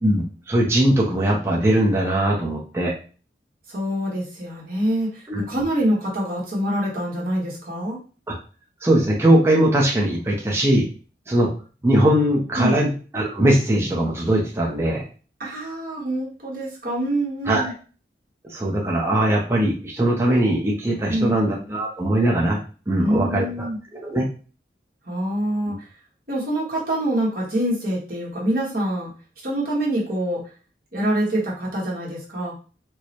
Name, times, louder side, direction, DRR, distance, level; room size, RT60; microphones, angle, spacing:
voice 1, 0.0-2.9 5.3-5.4 8.3-8.4 8.8-10.9 11.3-11.5 11.8-15.0 17.5-17.6 18.4-22.6 22.9-23.7 23.9-24.3 25.7-25.8, right 1 dB, 15° right, -2 dB, 0.6 m, -20 dB
voice 2, 3.7-8.0 12.5-12.8 15.4-17.7 21.1-21.3 22.9-23.8 25.0-25.9 26.3-29.1 29.4-30.4 30.9-32.5, right 1 dB, 50° right, -5 dB, 1.3 m, -25 dB
4.6 x 2.1 x 2.9 m, 0.37 s
head